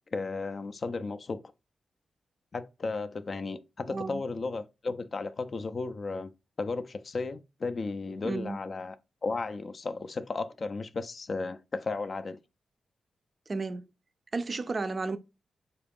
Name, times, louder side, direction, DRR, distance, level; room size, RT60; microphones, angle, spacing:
voice 1, 0.1-1.4 2.5-6.3 6.6-9.0 9.2-12.4, left 3 dB, 45° left, 0.4 m, -34 dB
voice 2, 3.9-4.2 8.2-8.6 13.5-13.8 14.3-15.2, right 3 dB, 40° right, 0.3 m, -32 dB
3.9 x 2.3 x 3.4 m
cardioid pair, 95°, 0 cm